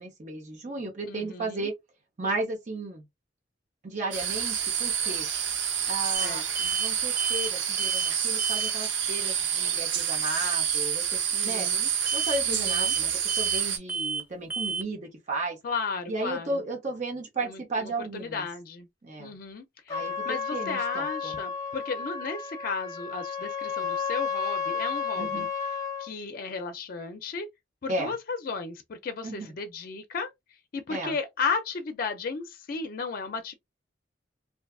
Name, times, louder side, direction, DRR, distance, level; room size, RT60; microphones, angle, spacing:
voice 1, 0.0-1.7 2.2-3.1 3.8-5.3 5.9-6.4 6.7-11.7 12.1-15.6 16.1-18.5 19.0-19.3 19.9-20.2 20.5-21.4 25.2-25.5 27.9-28.1 29.2-29.5 30.9-31.2, right 2 dB, 45° right, 0.7 m, -34 dB
voice 2, 1.1-1.7 6.2-6.7 11.3-11.9 12.5-12.9 15.6-16.6 17.4-18.9 19.2-25.5 26.0-27.5 27.8-30.3 30.7-33.6, left 4 dB, 55° left, 0.4 m, -34 dB
sound 1, 4.1-13.8, right 8 dB, 85° right, 0.6 m, -28 dB
sound 2, 6.1-6.3 6.6-6.9 7.2-7.5 7.8-8.1 8.4-8.7 12.1-12.4 12.7-13.0 13.3-13.6 13.9-14.2 14.5-14.8, right 4 dB, 10° right, 0.3 m, -31 dB
Trumpet, 19.9-26.1, left 6 dB, 20° left, 0.8 m, -32 dB
2.6 x 2.3 x 2.3 m
head